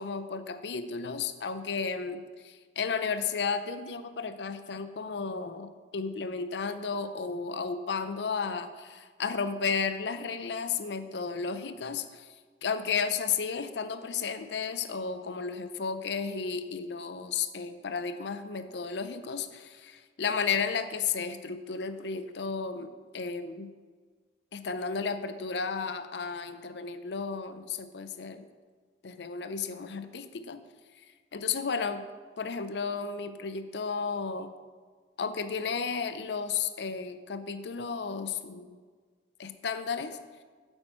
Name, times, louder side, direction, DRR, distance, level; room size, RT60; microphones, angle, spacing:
voice 1, 0.0-12.3 12.6-23.7 24.5-28.5 29.0-30.6 31.3-32.0 32.4-34.5 35.2-38.8 39.4-40.2, left 5 dB, 70° left, 11 dB, 0.6 m, -33 dB
8.8 x 7.8 x 4.4 m, 1.5 s
head